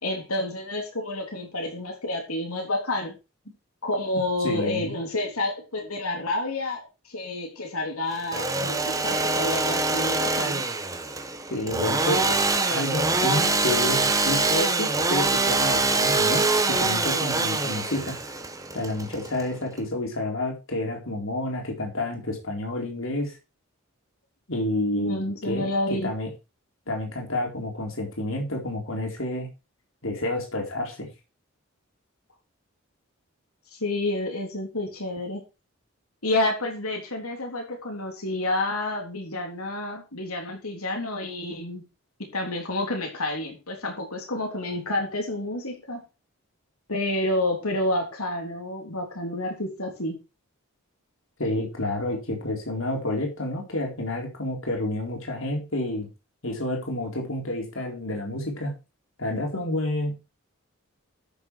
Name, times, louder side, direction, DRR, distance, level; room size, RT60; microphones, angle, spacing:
voice 1, 0.0-3.1 3.8-10.7 24.9-26.1 33.7-35.4 36.2-41.8 42.2-46.0 46.9-50.2, left 1 dB, 85° left, 2 dB, 3.7 m, -29 dB
voice 2, 4.4-4.9 11.5-12.4 12.7-18.4 18.7-23.4 24.5-26.3 26.9-29.5 30.0-31.1 51.4-56.1 56.4-58.7 59.2-60.1, left 1 dB, 70° left, 2 dB, 4.1 m, -29 dB
Engine / Sawing, 8.1-19.8, right 3 dB, 15° right, 1.5 m, -24 dB
13.0 x 7.2 x 4.8 m, 0.28 s
head